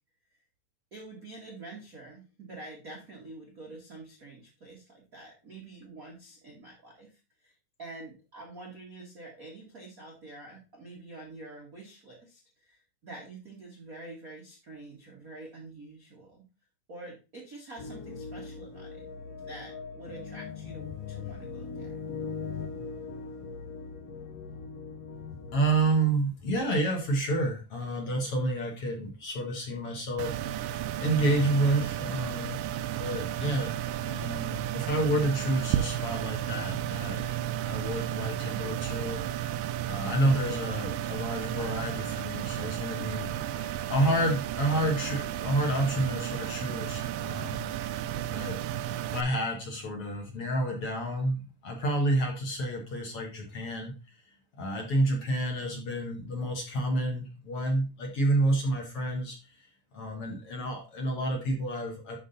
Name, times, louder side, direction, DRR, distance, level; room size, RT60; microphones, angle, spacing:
voice 1, 0.9-16.4 16.9-19.0 19.4-22.0, right 2 dB, 55° right, -1 dB, 1.0 m, -47 dB
sound 1, 17.8-26.0, left 5 dB, 70° left, 1.5 m, -40 dB
voice 2, 25.5-32.6 33.0-33.7 34.0-37.2 37.6-47.7 48.3-48.6 48.8-54.2 54.6-59.7 59.9-62.2, right 1 dB, 50° left, 1 dB, 1.9 m, -29 dB
sound 2, 30.2-49.2, right 11 dB, 80° right, 2.2 m, -33 dB
11.5 x 3.9 x 3.9 m, 0.31 s
omnidirectional pair, 4.1 m